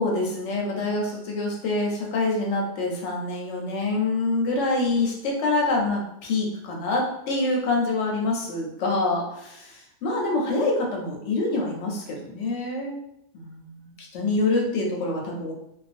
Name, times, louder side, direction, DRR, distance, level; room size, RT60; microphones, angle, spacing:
voice 1, 0.0-13.0 13.3-15.5, left 2 dB, 65° left, -1 dB, 0.8 m, -26 dB
2.4 x 2.2 x 2.4 m, 0.78 s
omnidirectional pair, 1.5 m